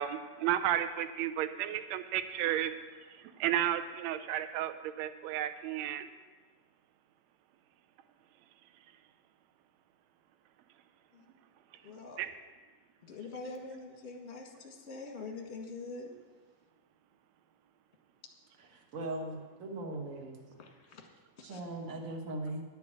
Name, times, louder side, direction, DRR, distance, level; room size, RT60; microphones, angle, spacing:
voice 1, 0.0-2.7 3.4-6.1 12.2-12.3, right 11 dB, 75° right, 11 dB, 1.8 m, -32 dB
voice 2, 11.8-12.2 13.0-16.1 20.6-21.1 21.4-21.6, left 3 dB, 35° left, 2 dB, 1.1 m, -44 dB
voice 3, 18.9-20.4 21.4-22.6, right 2 dB, 60° right, 2 dB, 0.8 m, -39 dB
11.5 x 6.7 x 8.3 m, 1.3 s
omnidirectional pair, 3.4 m